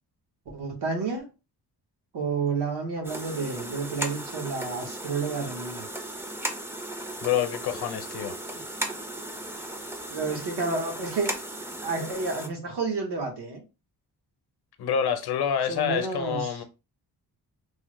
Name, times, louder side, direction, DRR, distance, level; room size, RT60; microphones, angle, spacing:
voice 1, 0.5-1.3 2.1-5.9 10.1-11.3 11.8-13.6 15.7-16.6, right 4 dB, 85° right, 1.2 m, -30 dB
sound 1, 3.0-12.5, right 1 dB, 5° right, 0.3 m, -36 dB
voice 2, 7.2-8.4 14.8-16.6, left 8 dB, 70° left, 0.7 m, -27 dB
3.3 x 2.1 x 3.1 m
wide cardioid pair, 140°, 40 cm